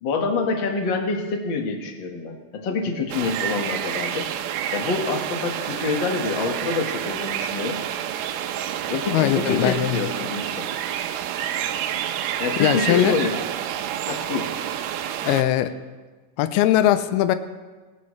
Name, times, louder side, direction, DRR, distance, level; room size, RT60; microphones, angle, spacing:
voice 1, 0.0-4.3 4.7-7.8 8.9-10.7 12.4-13.3 14.1-14.5, left 4 dB, 50° left, 2 dB, 1.4 m, -26 dB
sound 1, 3.1-15.4, right 10 dB, 85° right, 2.6 m, -29 dB
voice 2, 9.1-10.0 12.6-13.2 15.2-15.7 16.4-17.4, left 13 dB, 85° left, 11 dB, 2.6 m, -20 dB
19.5 x 17.0 x 3.2 m, 1.3 s
omnidirectional pair, 4.4 m